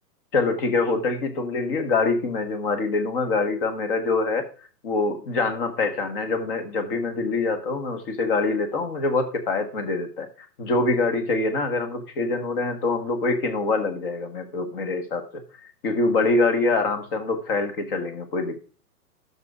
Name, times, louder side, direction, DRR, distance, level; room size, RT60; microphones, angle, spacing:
voice 1, 0.3-4.4 4.8-15.4 15.8-18.6, left 3 dB, 35° left, 7 dB, 1.4 m, -25 dB
11.5 x 6.8 x 3.7 m, 0.40 s
hypercardioid pair, 160°, 49 cm